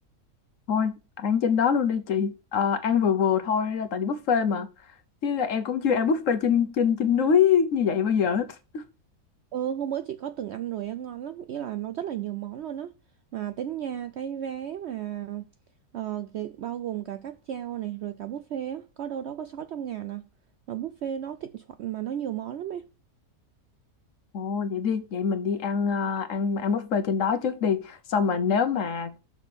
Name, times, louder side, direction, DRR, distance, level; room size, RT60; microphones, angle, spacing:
voice 1, 0.7-4.7 5.2-8.8 24.3-29.2, left 6 dB, 60° left, 1.1 m, -24 dB
voice 2, 9.5-12.9 13.3-15.5 15.9-20.2 20.7-22.9, right 10 dB, 70° right, 0.6 m, -33 dB
6.2 x 6.1 x 5.1 m
omnidirectional pair, 1.6 m